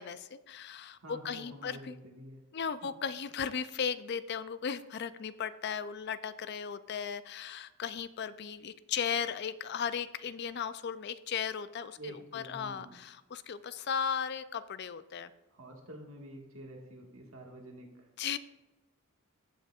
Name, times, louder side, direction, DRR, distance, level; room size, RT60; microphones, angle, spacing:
voice 1, 0.0-2.0 2.5-15.3 18.2-18.4, left 7 dB, 50° left, 14 dB, 0.4 m, -36 dB
voice 2, 1.0-2.4 12.0-13.0 15.5-18.1, equal, 80° right, 1 dB, 1.8 m, -48 dB
15.0 x 6.3 x 2.4 m, 1.0 s
head